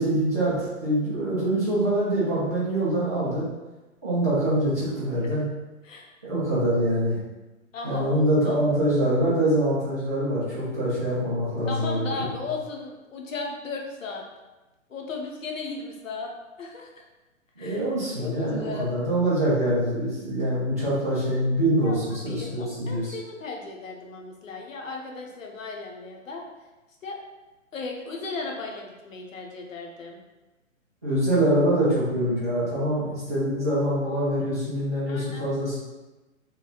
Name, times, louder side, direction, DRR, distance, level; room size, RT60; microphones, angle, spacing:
voice 1, 0.0-3.5 4.0-5.4 6.2-7.2 7.8-12.1 17.6-23.1 31.0-35.8, right 1 dB, 15° right, -11 dB, 0.4 m, -24 dB
voice 2, 5.8-6.2 7.7-8.6 11.7-14.2 14.9-16.3 16.6-17.0 17.6-17.8 18.2-18.9 21.8-22.0 22.2-26.4 27.0-27.2 27.7-30.2 35.1-35.5, left 3 dB, 70° left, 0 dB, 0.8 m, -36 dB
3.0 x 3.0 x 2.3 m, 1.1 s
figure-of-eight pair, 125°, 41 cm